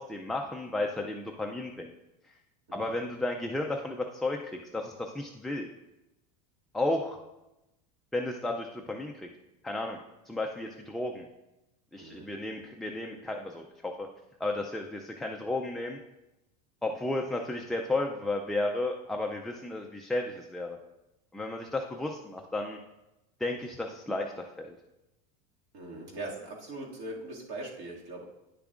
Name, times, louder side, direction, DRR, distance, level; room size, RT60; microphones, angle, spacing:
voice 1, 0.0-1.9 2.7-5.7 6.7-7.2 8.1-9.3 9.6-10.0 10.3-11.3 11.9-14.1 14.4-16.0 16.8-20.8 21.3-22.8 23.4-24.8, left 2 dB, ahead, 1 dB, 0.3 m, -33 dB
voice 2, 25.7-28.2, right 2 dB, 65° right, -2 dB, 2.2 m, -41 dB
9.8 x 6.9 x 2.5 m, 0.94 s
supercardioid pair, 150°, 20 cm